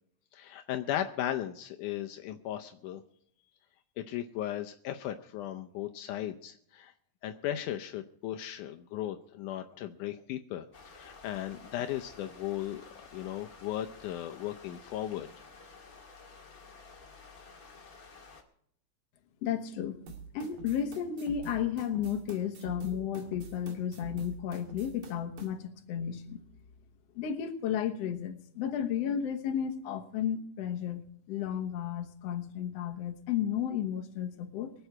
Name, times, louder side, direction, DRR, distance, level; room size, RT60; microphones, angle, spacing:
voice 1, 0.3-3.0 4.0-6.9 7.2-12.8 13.1-15.3, left 12 dB, 80° left, 6 dB, 2.1 m, -36 dB
sound 1, 10.7-18.4, left 4 dB, 35° left, 1.9 m, -52 dB
voice 2, 19.4-20.0 20.3-26.4 27.1-31.0 31.3-34.7, left 9 dB, 60° left, 6 dB, 2.1 m, -33 dB
sound 2, 20.1-25.5, right 3 dB, 90° right, 3.8 m, -45 dB
23.5 x 8.0 x 4.7 m, 0.68 s
omnidirectional pair, 3.7 m